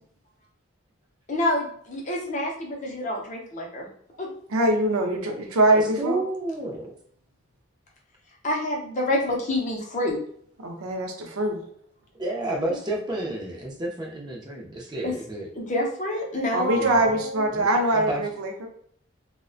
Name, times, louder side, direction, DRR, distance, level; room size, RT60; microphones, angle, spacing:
voice 1, 1.3-3.9 4.2-4.3 8.4-10.2 15.0-15.1 15.5-17.3, left 1 dB, 35° left, -1 dB, 0.5 m, -27 dB
voice 2, 4.5-6.2 10.6-11.6 16.5-18.7, right 1 dB, 85° right, 3 dB, 0.5 m, -23 dB
voice 3, 5.7-6.9 12.2-15.5 16.7-17.0 17.5-18.2, right 1 dB, 20° right, -1 dB, 0.4 m, -31 dB
2.5 x 2.1 x 2.3 m, 0.62 s
head